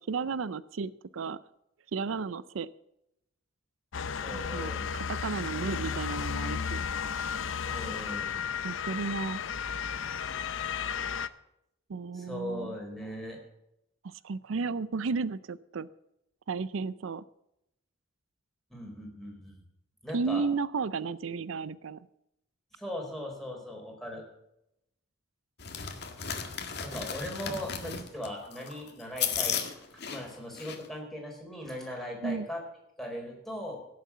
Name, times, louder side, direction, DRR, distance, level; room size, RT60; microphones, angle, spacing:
voice 1, 0.0-1.4 1.9-2.7 4.3-6.8 8.6-9.4 11.9-12.7 14.0-15.9 16.5-17.2 20.1-22.0 32.2-32.5, right 4 dB, 90° right, 18 dB, 0.5 m, -33 dB
Motor vehicle (road) / Siren, 3.9-11.3, left 6 dB, 75° left, 0.6 m, -34 dB
voice 2, 4.2-4.9 7.7-8.4 12.1-13.4 18.7-19.6 20.0-20.4 22.7-24.2 26.8-29.6 29.9-32.6 33.0-33.8, left 1 dB, ahead, 0 dB, 4.3 m, -39 dB
sound 1, 25.6-30.9, left 7 dB, 60° left, 1.8 m, -35 dB
17.0 x 7.5 x 7.3 m, 0.82 s
head